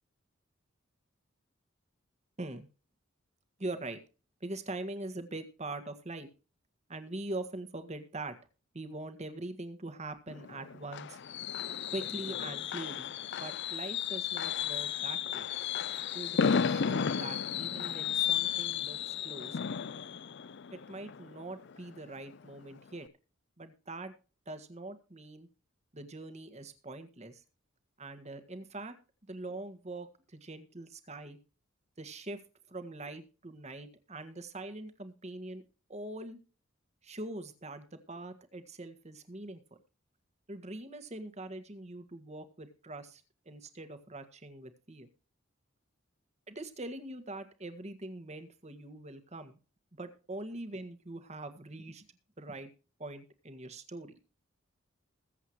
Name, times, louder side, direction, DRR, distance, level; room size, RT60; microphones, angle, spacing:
voice 1, 3.6-4.0 4.4-6.3 6.9-8.4 8.7-11.2 11.9-13.1 13.4-15.5 16.1-19.6 20.7-23.1 23.6-24.1 24.4-25.5 25.9-27.4 28.0-28.9 29.2-31.4 32.0-32.4 32.7-35.6 35.9-36.4 37.0-39.6 40.5-45.1 46.5-49.6 49.9-52.0 52.4-52.7 53.0-54.1, right 2 dB, 35° right, 9 dB, 1.7 m, -43 dB
Fireworks, 10.3-22.0 22.3-22.6 22.9-23.0, left 7 dB, 55° left, 0.5 m, -34 dB
21.0 x 8.0 x 3.1 m, 0.35 s
head